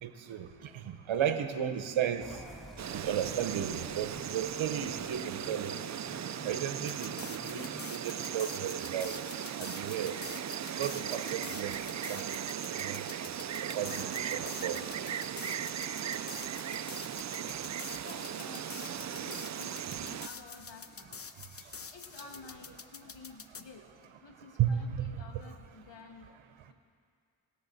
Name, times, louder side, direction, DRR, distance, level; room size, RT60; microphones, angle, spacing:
voice 1, 0.0-2.3 2.9-5.7 6.4-9.2 9.6-10.1 10.8-12.4 12.7-13.0 13.6-14.8 24.6-25.4, right 9 dB, 75° right, 9 dB, 0.9 m, -34 dB
sound 1, 2.2-8.0, equal, ahead, 2.2 m, -50 dB
Insect, 2.8-20.3, right 9 dB, 40° right, 0.4 m, -38 dB
sound 2, 6.8-23.6, left 5 dB, 30° left, 0.7 m, -47 dB
voice 2, 13.7-15.3 17.4-17.7 18.0-21.1 21.9-23.8 24.2-26.3 26.7-26.8, left 4 dB, 60° left, 3 dB, 1.9 m, -52 dB
20.0 x 6.8 x 4.0 m, 2.1 s
cardioid pair, 50°, 48 cm